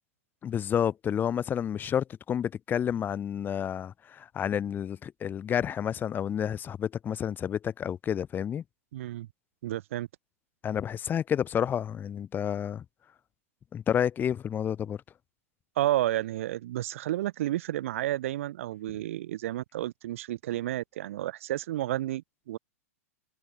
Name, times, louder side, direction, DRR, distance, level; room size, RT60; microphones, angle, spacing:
voice 1, 0.4-8.6 10.6-12.8 13.7-15.0, left 9 dB, 25° left, 1.7 m, -30 dB
voice 2, 8.9-9.3 9.6-10.1 15.8-22.6, right 14 dB, 65° right, 2.3 m, -31 dB
hypercardioid pair, 105°, 8 cm